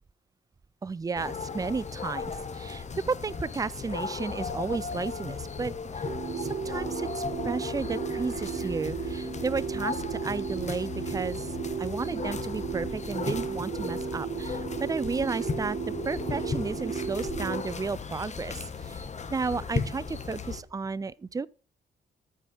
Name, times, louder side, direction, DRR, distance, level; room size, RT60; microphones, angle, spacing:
voice 1, 0.8-6.1 6.4-11.5 11.8-15.8 16.0-19.0 19.3-21.5, right 4 dB, 20° right, 0.4 m, -33 dB
sound 1, 1.1-20.6, left 5 dB, 40° left, 1.4 m, -36 dB
sound 2, 6.0-17.6, right 7 dB, 40° right, 1.3 m, -35 dB
14.0 x 4.9 x 4.4 m
cardioid pair, 75°, 18 cm